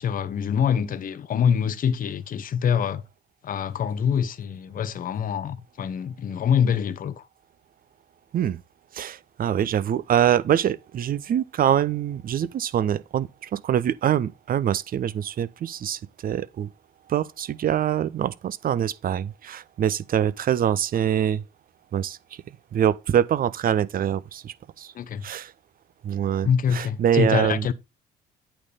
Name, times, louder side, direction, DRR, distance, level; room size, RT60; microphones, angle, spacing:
voice 1, 0.0-3.0 3.4-7.3 24.9-25.2 26.4-27.7, left 7 dB, 45° left, 0.8 m, -25 dB
voice 2, 8.9-16.7 17.1-21.4 21.9-22.2 22.7-24.9 25.2-25.5 26.0-27.7, right 10 dB, 45° right, 0.7 m, -24 dB
8.7 x 3.4 x 5.5 m
hypercardioid pair, 55°, 20 cm